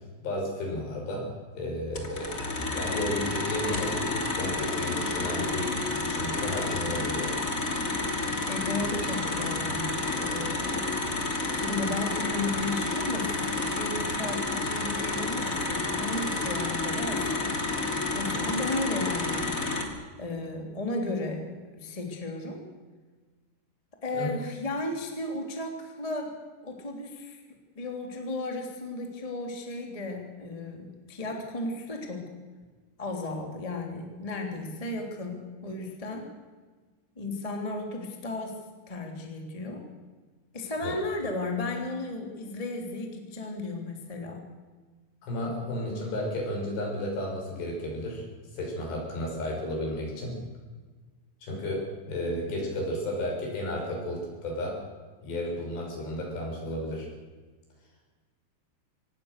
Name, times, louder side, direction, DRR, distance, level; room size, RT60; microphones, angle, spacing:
voice 1, 0.2-1.2 1.5-7.3 24.1-24.3 40.8-40.9 45.2-48.2 48.5-50.4 51.4-54.8 55.2-57.1, left 1 dB, 60° left, 0 dB, 8.1 m, -33 dB
sound 1, 1.9-19.8, left 2 dB, 25° left, 1.8 m, -30 dB
voice 2, 8.5-10.9 11.5-17.4 18.1-19.5 20.2-22.6 24.0-26.3 26.6-27.4 27.7-32.3 33.0-36.3 37.2-38.6 38.9-39.8 40.5-44.4, left 2 dB, 10° left, 2 dB, 2.2 m, -34 dB
25.5 x 19.0 x 6.7 m, 1.4 s
omnidirectional pair, 5.5 m